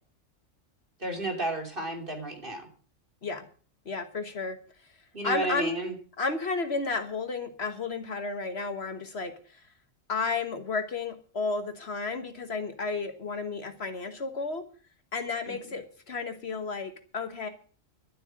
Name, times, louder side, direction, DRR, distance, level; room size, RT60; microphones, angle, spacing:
voice 1, 1.0-2.7 5.1-5.9 15.5-15.6, right 2 dB, 40° right, 3 dB, 3.4 m, -32 dB
voice 2, 3.8-4.6 5.2-5.7 6.2-9.6 10.1-14.6 15.1-17.5, left 4 dB, 55° left, 9 dB, 1.6 m, -32 dB
12.0 x 7.9 x 8.7 m, 0.42 s
omnidirectional pair, 1.3 m